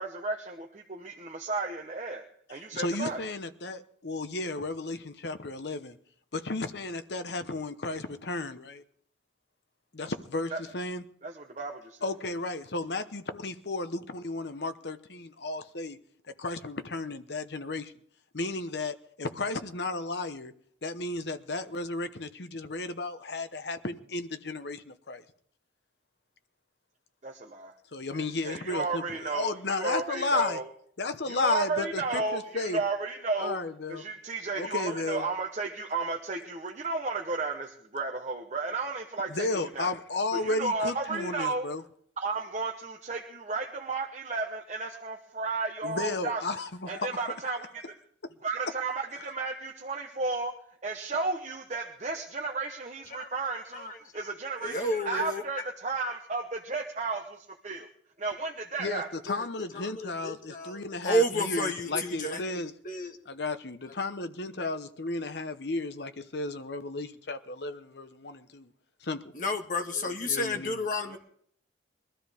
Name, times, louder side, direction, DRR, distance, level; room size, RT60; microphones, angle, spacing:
voice 1, 0.0-2.2 2.5-3.2 10.5-10.6 11.2-12.0 27.2-27.7 28.1-30.7 31.3-33.6 33.9-39.9 40.3-41.6 42.2-46.4 46.9-47.9 48.4-50.5 50.8-57.9 58.2-59.1, right 3 dB, 40° right, 1.0 m, -33 dB
voice 2, 2.7-6.0 6.3-8.8 9.9-11.0 12.0-16.0 16.4-17.9 18.3-20.5 20.8-25.2 27.9-30.6 31.0-32.8 33.4-34.0 34.6-35.2 39.3-41.8 45.8-47.3 49.2-49.3 58.8-62.7 63.3-68.7 69.0-69.3 70.3-70.8, left 3 dB, 65° left, 1.0 m, -33 dB
voice 3, 53.1-54.3 54.6-55.7 59.2-59.4 59.7-63.2 69.3-71.2, left 1 dB, 45° left, 1.6 m, -32 dB
22.0 x 13.0 x 3.6 m
head